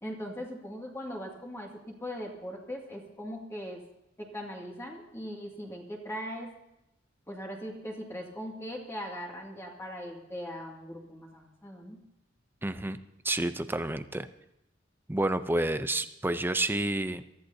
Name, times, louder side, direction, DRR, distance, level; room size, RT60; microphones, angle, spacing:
voice 1, 0.0-3.8 4.2-6.5 7.3-12.0, equal, 15° left, -1 dB, 2.3 m, -40 dB
voice 2, 12.6-13.0 13.2-14.3 15.1-17.2, right 1 dB, 10° right, 11 dB, 0.6 m, -29 dB
23.0 x 14.0 x 2.8 m, 0.86 s
head